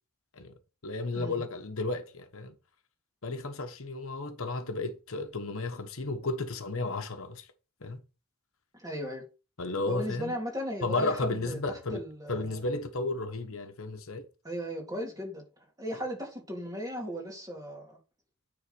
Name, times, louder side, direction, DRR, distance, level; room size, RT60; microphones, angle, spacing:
voice 1, 0.8-2.5 3.2-7.5 7.8-8.0 9.6-10.3 10.8-12.0 12.3-14.2, left 2 dB, 65° left, 1.1 m, -33 dB
voice 2, 8.7-9.3 9.9-12.6 14.4-18.0, equal, 15° right, 3.0 m, -37 dB
9.7 x 4.0 x 5.3 m
head